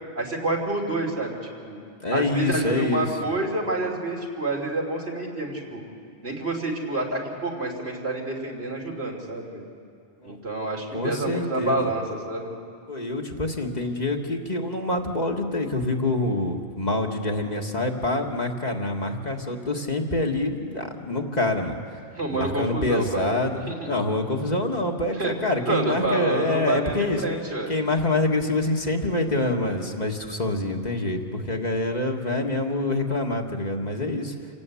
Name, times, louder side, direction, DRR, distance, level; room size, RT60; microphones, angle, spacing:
voice 1, 0.2-1.8 2.1-5.8 6.2-9.6 10.2-12.5 22.2-23.9 25.2-25.3 25.7-27.7, right 2 dB, 70° right, 0 dB, 3.5 m, -28 dB
voice 2, 2.0-3.1 10.2-10.4 10.9-11.9 12.9-21.8 22.3-23.6 23.9-27.2 27.7-34.3, left 2 dB, 40° left, 2 dB, 1.8 m, -26 dB
27.5 x 17.5 x 8.5 m, 2.4 s
omnidirectional pair, 1.1 m